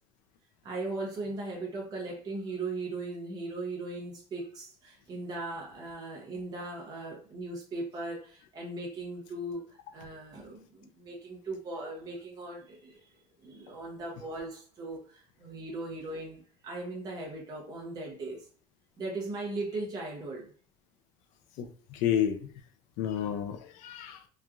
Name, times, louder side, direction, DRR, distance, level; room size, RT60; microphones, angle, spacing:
voice 1, 0.6-13.1 13.4-18.4 19.0-20.5, right 2 dB, 30° right, 0.7 m, -38 dB
voice 2, 21.6-22.5 23.0-24.2, left 9 dB, 70° left, 0.4 m, -31 dB
3.0 x 2.4 x 2.3 m
cardioid pair, 170°, 14 cm